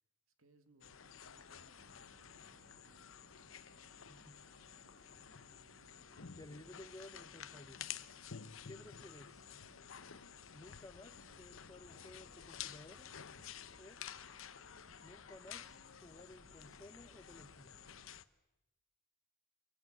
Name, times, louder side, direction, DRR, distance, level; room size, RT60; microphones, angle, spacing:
voice 1, 0.4-3.1, right 2 dB, 80° right, 8 dB, 2.4 m, -70 dB
sound 1, 0.8-18.2, left 8 dB, 70° left, 0.9 m, -52 dB
sound 2, 1.8-18.1, right 2 dB, 60° right, 0.9 m, -68 dB
sound 3, 2.0-7.2, left 1 dB, 40° left, 3.2 m, -72 dB
voice 2, 4.1-4.4 6.4-7.8 8.7-9.5 10.5-13.1 13.8-14.0 15.0-17.7, left 1 dB, 15° left, 9 dB, 1.3 m, -56 dB
26.5 x 23.5 x 8.1 m, 0.96 s
head